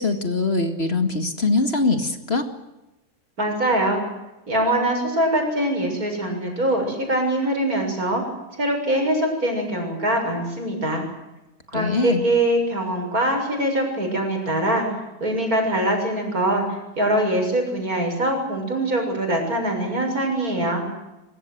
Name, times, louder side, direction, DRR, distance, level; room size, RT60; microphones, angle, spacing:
voice 1, 0.0-2.4 11.7-12.3, left 3 dB, 35° left, 7 dB, 2.3 m, -22 dB
voice 2, 3.4-4.0 4.5-8.2 8.6-11.0 11.7-14.8 15.2-20.8, right 1 dB, 60° right, 3 dB, 7.6 m, -23 dB
23.5 x 23.5 x 8.1 m, 0.98 s
omnidirectional pair, 1.8 m